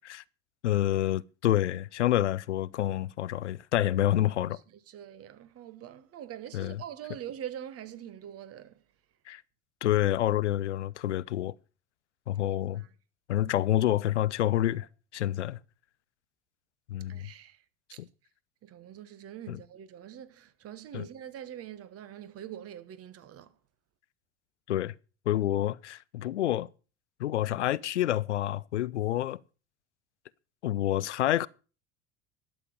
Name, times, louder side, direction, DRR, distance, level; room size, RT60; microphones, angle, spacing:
voice 1, 0.6-4.6 6.5-6.8 9.3-9.4 9.8-11.6 12.3-12.9 13.3-15.6 16.9-17.3 18.0-18.1 19.5-19.6 20.9-21.1 24.7-24.9 25.3-26.7 27.2-29.4 30.6-31.5, left 13 dB, 85° left, 0.5 m, -28 dB
voice 2, 4.9-8.8 12.8-12.9 17.1-17.6 17.9-18.0 18.6-23.5, right 10 dB, 45° right, 1.3 m, -44 dB
12.0 x 7.3 x 6.4 m
hypercardioid pair, 70°, 34 cm